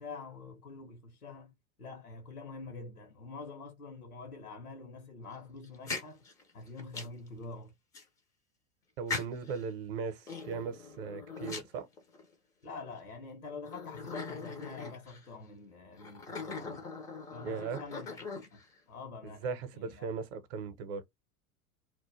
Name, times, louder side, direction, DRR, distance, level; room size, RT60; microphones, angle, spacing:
voice 1, 0.0-6.2 6.5-7.7 12.6-16.9 17.3-18.2 18.5-18.6 18.9-20.1, left 3 dB, 90° left, 0.8 m, -46 dB
sound 1, 5.6-7.3 7.9-8.0 9.1-9.6 10.2-12.3 13.0-13.1 13.7-15.3 16.0-18.7, left 4 dB, 10° left, 0.3 m, -41 dB
voice 2, 9.0-11.9 17.4-17.8 19.2-21.0, right 5 dB, 45° right, 0.7 m, -38 dB
2.2 x 2.1 x 3.1 m
figure-of-eight pair, 85°, 43 cm